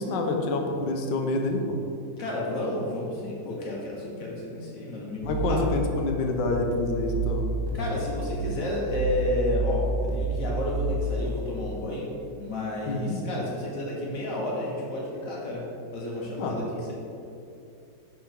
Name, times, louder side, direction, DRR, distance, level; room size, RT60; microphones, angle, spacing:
voice 1, 0.0-1.8 5.2-7.4 12.9-13.2 16.4-16.6, left 2 dB, 75° left, 3 dB, 1.3 m, -27 dB
voice 2, 2.2-5.7 7.7-16.9, left 1 dB, 50° left, -3 dB, 1.3 m, -31 dB
sound 1, 5.2-11.3, right 2 dB, 65° right, 0.5 m, -30 dB
6.4 x 3.6 x 4.5 m, 2.6 s
omnidirectional pair, 2.0 m